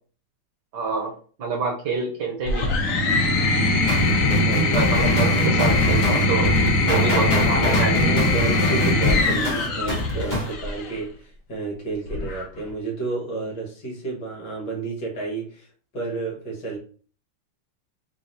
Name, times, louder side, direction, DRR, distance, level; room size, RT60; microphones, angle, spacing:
voice 1, 0.7-1.1 1.4-2.7 4.7-6.6 6.9-8.1, right 4 dB, 60° right, 0 dB, 1.3 m, -27 dB
sound 1, 2.5-10.9 12.1-12.7, left 2 dB, 75° left, 0.7 m, -21 dB
sound 2, 3.9-10.5, left 1 dB, 25° left, 1.2 m, -26 dB
voice 2, 4.2-4.9 8.0-15.7 15.9-16.8, right 3 dB, 55° left, -2 dB, 1.8 m, -31 dB
3.8 x 2.9 x 3.9 m, 0.42 s
omnidirectional pair, 2.4 m